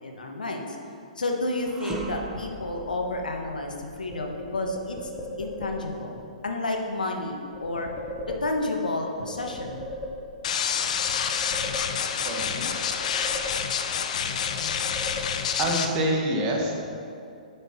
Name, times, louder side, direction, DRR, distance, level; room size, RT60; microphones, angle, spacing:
voice 1, 0.0-0.7 1.2-5.1 5.4-7.9 8.3-9.9, left 2 dB, 90° left, 2 dB, 1.2 m, -30 dB
sound 1, 1.6-10.8 11.2-11.4 12.3-13.2, right 3 dB, 10° right, 0.8 m, -43 dB
sound 2, 4.1-6.1 7.5-8.9 9.3-10.6 11.0-12.3 12.7-14.1 14.4-15.8, left 2 dB, 10° left, 1.1 m, -38 dB
sound 3, 10.4-15.9, left 7 dB, 60° left, 0.6 m, -28 dB
voice 2, 12.2-12.7 15.6-16.7, right 1 dB, 35° right, 0 dB, 1.6 m, -26 dB
6.8 x 6.0 x 5.9 m, 2.5 s
hypercardioid pair, 125°, 4 cm